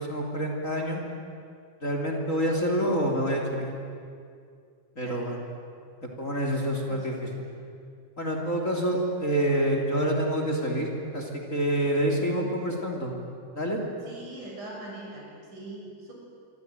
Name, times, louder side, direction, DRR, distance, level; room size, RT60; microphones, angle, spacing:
voice 1, 0.1-1.0 1.8-3.7 5.0-5.4 6.2-7.3 8.2-13.1 13.5-13.8, right 1 dB, 25° left, 1 dB, 3.4 m, -27 dB
voice 2, 6.9-7.7 8.9-9.6 12.4-12.6 14.0-16.1, right 2 dB, 80° right, -2 dB, 8.4 m, -44 dB
25.5 x 25.0 x 9.2 m, 2.4 s
omnidirectional pair, 3.5 m